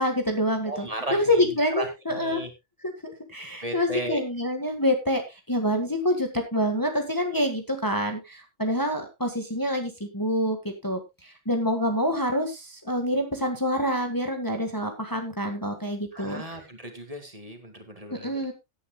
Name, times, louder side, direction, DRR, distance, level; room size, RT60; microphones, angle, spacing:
voice 1, 0.0-2.4 2.8-16.4 18.1-18.5, equal, 15° left, 4 dB, 1.6 m, -27 dB
voice 2, 0.7-1.5 1.8-2.5 3.6-4.2 16.1-18.4, right 1 dB, 30° right, 5 dB, 2.3 m, -35 dB
17.0 x 9.7 x 2.3 m, 0.22 s
omnidirectional pair, 1.2 m